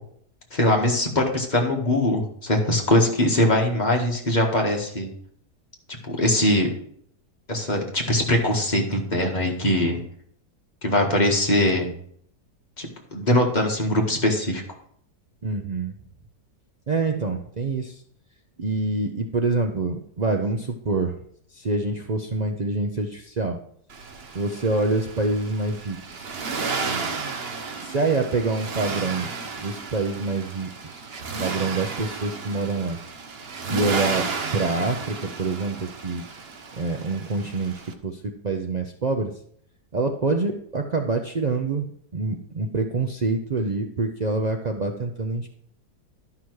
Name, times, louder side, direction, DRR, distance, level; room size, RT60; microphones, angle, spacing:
voice 1, 0.5-5.1 6.0-6.7 7.5-10.0 10.8-11.9 12.8-14.6, left 1 dB, 25° left, 0 dB, 1.8 m, -22 dB
voice 2, 15.4-15.9 16.9-18.0 18.6-21.2 21.5-23.6 24.3-26.3 27.8-29.3 29.6-31.1 31.4-33.0 33.7-36.3 36.7-39.4 39.9-45.5, right 3 dB, 70° right, 3 dB, 0.4 m, -26 dB
Accelerating revving vroom, 23.9-37.9, right 4 dB, 45° right, 1.0 m, -33 dB
12.0 x 6.0 x 4.7 m, 0.63 s
omnidirectional pair, 1.8 m